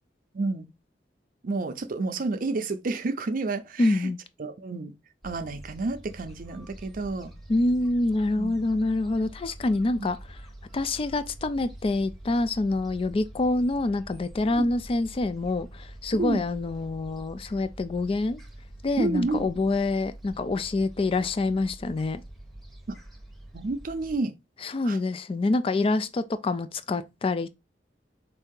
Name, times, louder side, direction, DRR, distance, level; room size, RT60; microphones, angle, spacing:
voice 1, 0.3-0.7 1.4-4.1 4.4-4.9 5.2-7.3 8.4-8.6 10.0-10.1 14.4-14.7 16.2-16.4 19.0-19.5 22.9-23.0 23.5-24.3 24.8-25.0, right 3 dB, 50° right, 0.5 m, -30 dB
voice 2, 3.8-4.2 7.5-10.2 10.7-18.4 18.8-22.2 24.6-27.5, left 2 dB, 30° left, 0.3 m, -26 dB
Gull seagull, 5.2-24.2, right 1 dB, ahead, 0.9 m, -45 dB
4.3 x 2.7 x 3.7 m
head